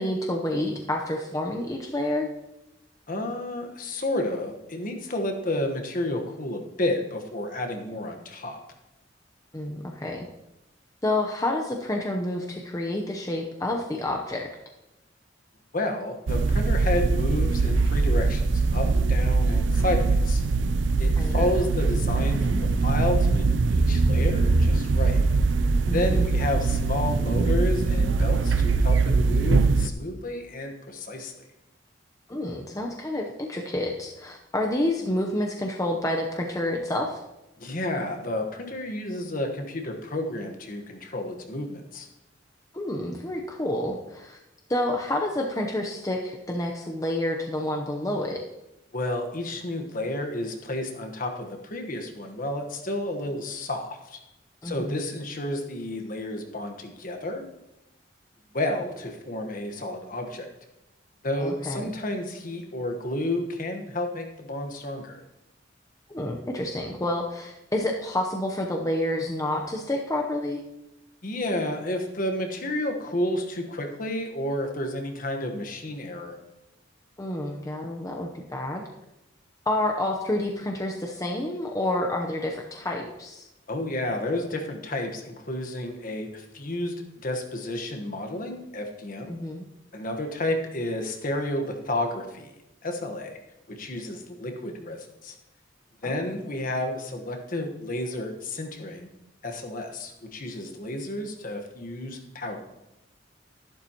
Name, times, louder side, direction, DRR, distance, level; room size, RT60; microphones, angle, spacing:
voice 1, 0.0-2.3 9.5-10.3 11.0-14.5 21.2-21.4 25.9-26.3 32.3-37.2 42.7-44.4 44.7-48.4 54.6-55.0 61.4-61.9 66.1-70.6 77.2-78.8 79.7-83.5 89.3-89.7 96.0-96.2, left 1 dB, 20° left, 0 dB, 0.8 m, -29 dB
voice 2, 3.1-8.6 15.7-20.4 21.0-25.2 25.9-31.3 37.6-42.1 48.9-54.2 54.6-57.4 58.5-60.5 61.2-65.2 71.2-76.4 83.7-89.3 89.9-92.5 92.8-93.4 93.7-95.3 96.0-99.1 99.4-102.6, left 1 dB, 45° left, 4 dB, 1.3 m, -31 dB
sound 1, 16.3-29.9, right 3 dB, 80° right, 0.5 m, -22 dB
11.5 x 11.5 x 3.0 m, 0.93 s
head